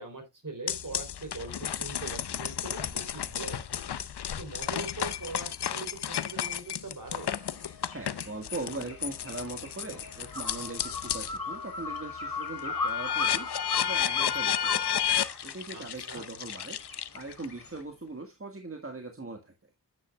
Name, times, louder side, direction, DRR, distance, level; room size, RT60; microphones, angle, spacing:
voice 1, 0.0-3.8 4.4-7.3 15.7-16.3, right 3 dB, 50° right, 5 dB, 3.6 m, -42 dB
sound 1, 0.7-11.4 11.8-17.4, left 9 dB, 75° left, 0.7 m, -32 dB
sound 2, 7.1-17.8, left 3 dB, 55° left, 3.0 m, -39 dB
voice 2, 7.9-13.5 13.8-15.1 15.4-16.8 17.1-19.5, right 2 dB, 35° right, 3 dB, 1.6 m, -40 dB
9.7 x 9.1 x 2.3 m, 0.20 s
wide cardioid pair, 70°, 40 cm